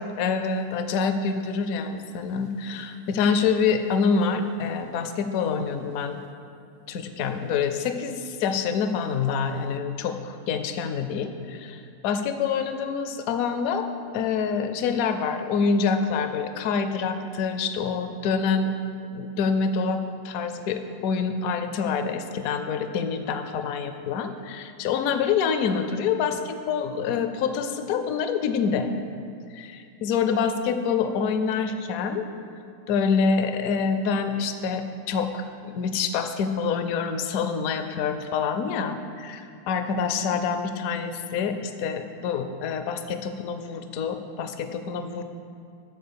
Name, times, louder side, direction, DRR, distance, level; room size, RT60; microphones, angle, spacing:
voice 1, 0.0-6.2 6.9-13.9 14.1-18.7 19.1-28.9 29.5-32.2 32.9-45.2, left 5 dB, 65° left, 8 dB, 1.0 m, -26 dB
12.0 x 4.3 x 6.9 m, 2.4 s
omnidirectional pair, 1.7 m